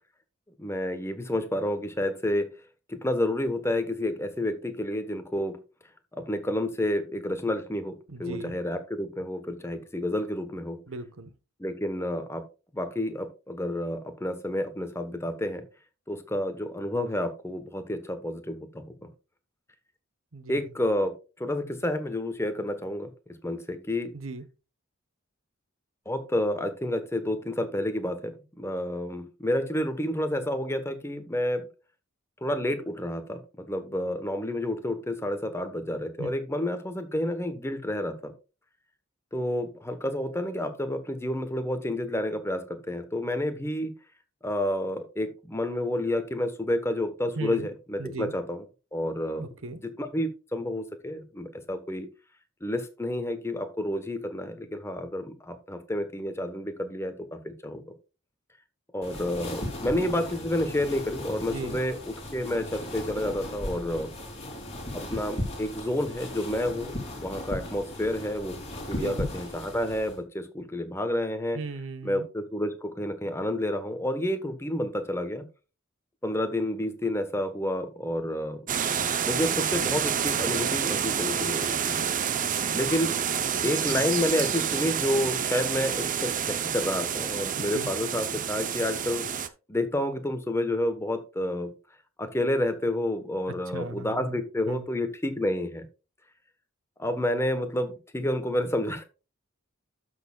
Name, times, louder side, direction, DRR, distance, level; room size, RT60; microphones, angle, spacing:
voice 1, 0.6-2.5 2.9-5.6 6.1-10.8 11.6-12.4 12.7-15.6 16.1-19.1 20.5-21.1 21.4-23.1 23.4-24.1 26.0-31.7 32.4-38.3 39.3-43.9 44.4-48.6 48.9-49.5 49.7-52.1 52.6-57.8 58.9-64.1 64.9-68.6 68.9-71.6 72.0-75.4 76.2-78.6 79.2-81.9 82.7-83.1 83.6-89.2 89.7-91.7 92.2-95.9 97.0-99.0, left 1 dB, 15° left, 1.1 m, -30 dB
voice 2, 8.1-8.6 10.9-11.3 20.3-20.6 24.1-24.4 36.2-36.3 47.4-47.7 48.0-48.3 49.4-49.8 61.5-61.8 68.9-69.2 71.5-72.3 87.5-87.9 93.7-94.4 94.7-94.9, right 3 dB, 70° right, 1.1 m, -37 dB
sound 1, 59.0-70.2, left 1 dB, 30° left, 3.0 m, -37 dB
sound 2, 78.7-89.5, right 8 dB, 40° right, 0.7 m, -28 dB
13.0 x 6.5 x 2.3 m
head